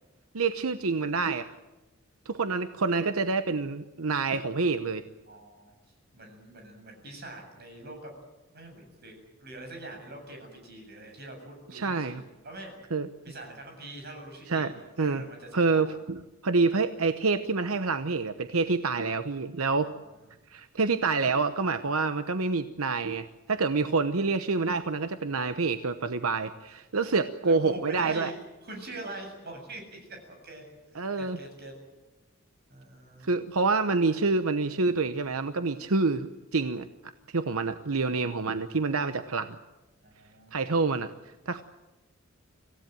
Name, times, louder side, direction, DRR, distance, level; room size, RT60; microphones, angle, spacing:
voice 1, 0.3-1.5 2.3-5.0 11.7-12.2 12.9-13.1 14.5-14.7 15.0-15.2 15.5-19.9 20.5-28.3 31.0-31.4 33.2-36.9 37.3-39.6 40.5-41.1 41.5-41.6, right 4 dB, 90° right, 10 dB, 1.0 m, -27 dB
voice 2, 5.3-5.7 6.1-8.1 8.5-12.7 13.2-15.9 19.8-20.2 27.0-27.2 27.4-28.4 28.6-30.6 31.1-31.7 32.7-33.3 40.0-40.7, right 2 dB, 50° right, 3 dB, 7.6 m, -44 dB
26.0 x 16.5 x 9.1 m, 1.1 s
head